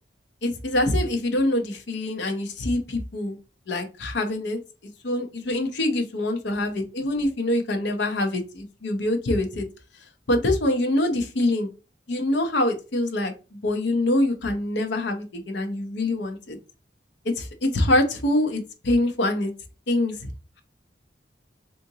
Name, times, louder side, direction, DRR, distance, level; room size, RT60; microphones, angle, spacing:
voice 1, 0.4-3.4 3.7-4.6 5.0-9.7 10.3-11.7 12.1-16.6 17.2-19.5 19.9-20.1, left 1 dB, 75° left, 5 dB, 0.6 m, -25 dB
3.7 x 2.5 x 2.7 m, 0.32 s
head